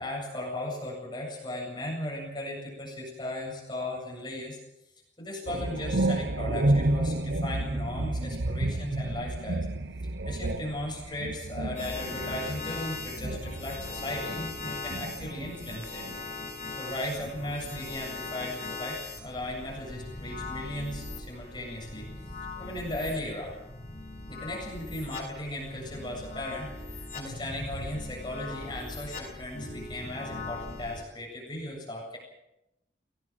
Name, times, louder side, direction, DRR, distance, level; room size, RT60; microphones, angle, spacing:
voice 1, 0.0-4.6 5.2-9.7 10.2-16.0 16.8-22.1 22.6-23.5 24.3-32.2, left 1 dB, 25° left, -2 dB, 7.8 m, -37 dB
sound 1, 5.5-16.3 16.6-17.8, right 1 dB, 80° right, 1.1 m, -31 dB
sound 2, 11.8-31.0, left 3 dB, 45° left, 6.7 m, -40 dB
22.0 x 19.0 x 7.7 m, 0.86 s
head